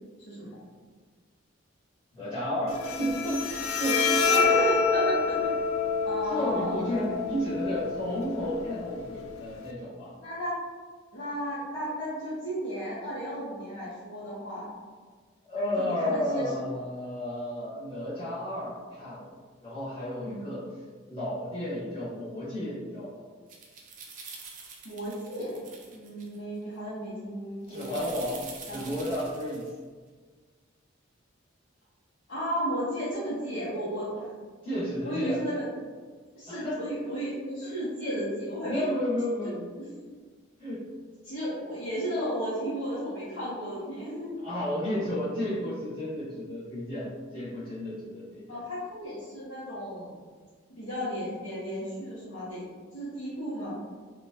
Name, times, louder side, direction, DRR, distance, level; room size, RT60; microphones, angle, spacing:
voice 1, 0.3-0.6 4.3-5.5 6.0-7.1 10.2-10.5 11.1-14.7 15.8-16.8 20.2-20.5 24.8-28.1 28.7-28.8 32.3-34.3 35.0-35.6 36.4-38.8 39.4-39.9 41.2-44.4 48.5-50.1 50.8-52.6 52.9-53.8, equal, 65° left, -12 dB, 0.8 m, -34 dB
voice 2, 2.1-3.5 3.8-4.3 6.3-10.1 15.4-19.4 19.6-20.7 21.1-23.2 27.7-28.4 28.7-29.7 34.6-35.4 36.5-36.8 37.6-38.2 38.6-39.8 40.6-40.9 44.4-48.6, equal, 25° left, -13 dB, 1.0 m, -32 dB
Bowed string instrument, 2.7-9.7, left 4 dB, 80° left, 0.3 m, -28 dB
sound 1, 23.5-26.4 27.7-29.7, right 4 dB, 40° right, 0.4 m, -46 dB
2.8 x 2.2 x 2.7 m, 1.5 s
head